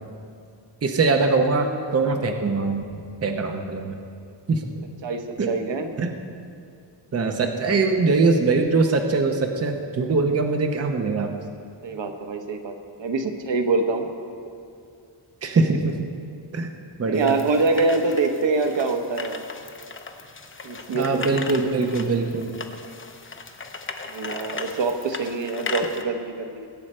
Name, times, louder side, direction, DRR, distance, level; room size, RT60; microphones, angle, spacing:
voice 1, 0.8-4.0 4.5-4.7 5.4-5.5 6.0-6.1 7.1-11.3 15.4-16.1 16.5-16.7 17.0-17.3 20.9-22.5, right 3 dB, 35° right, 4 dB, 0.8 m, -22 dB
voice 2, 5.0-5.9 11.8-12.7 13.0-14.1 17.1-19.4 20.6-21.3 24.1-26.7, right 3 dB, 75° right, 5 dB, 1.2 m, -25 dB
sound 1, 17.1-26.0, left 4 dB, 25° left, 0.7 m, -37 dB
21.0 x 8.8 x 4.4 m, 2.4 s
wide cardioid pair, 165°, 45 cm